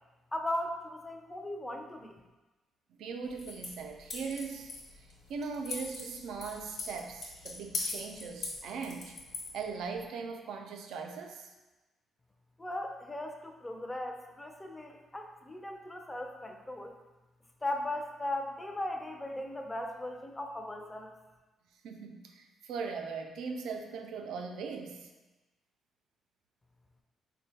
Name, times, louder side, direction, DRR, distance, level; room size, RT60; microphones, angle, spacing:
voice 1, 0.3-2.2 12.6-17.0 17.6-21.1, left 1 dB, 15° left, 3 dB, 0.4 m, -38 dB
voice 2, 2.9-9.2 9.5-11.5 21.8-25.1, right 5 dB, 80° right, 4 dB, 0.3 m, -40 dB
sound 1, 3.3-10.0, left 3 dB, 65° left, 1.1 m, -42 dB
4.3 x 2.1 x 2.7 m, 1.1 s
cardioid pair, 90°, 0 cm